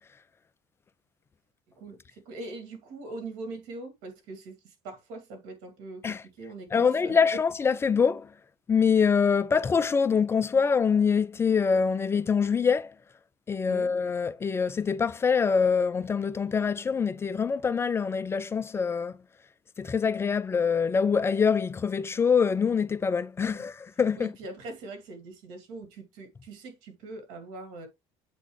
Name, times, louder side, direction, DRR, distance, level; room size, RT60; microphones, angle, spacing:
voice 1, 1.8-7.2 13.7-13.9 23.5-23.7 24.2-27.9, right 2 dB, 90° right, 2.4 m, -42 dB
voice 2, 6.7-8.3 8.7-12.9 13.5-19.2 19.8-24.3, left 6 dB, 20° left, 0.4 m, -25 dB
8.2 x 4.1 x 3.1 m
cardioid pair, 130°, 12 cm